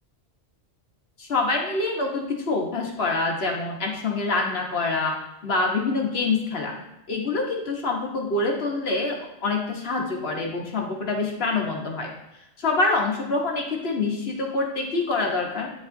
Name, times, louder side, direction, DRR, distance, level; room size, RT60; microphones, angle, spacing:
voice 1, 1.2-5.1 5.4-6.7 7.1-12.1 12.6-15.7, left 3 dB, 60° left, 0 dB, 1.3 m, -26 dB
9.0 x 4.7 x 2.6 m, 0.89 s
omnidirectional pair, 1.2 m